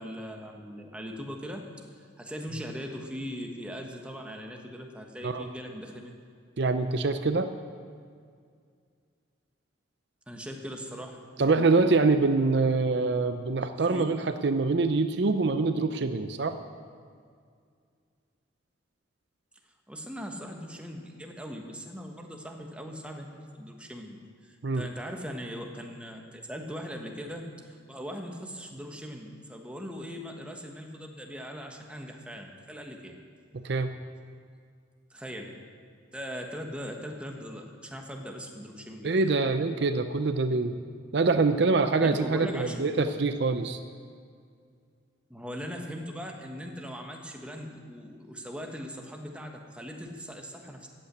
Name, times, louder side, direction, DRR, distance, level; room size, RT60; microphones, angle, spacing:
voice 1, 0.0-1.7 2.2-6.2 10.3-11.2 13.9-14.1 19.9-33.2 35.1-35.5 36.1-39.1 42.0-43.1 45.3-50.9, equal, 5° right, 2 dB, 1.3 m, -40 dB
voice 2, 6.6-7.5 11.4-16.6 24.6-24.9 33.5-33.9 39.0-40.8 41.1-43.8, right 3 dB, 60° right, 9 dB, 0.6 m, -25 dB
14.5 x 8.6 x 8.0 m, 2.1 s
head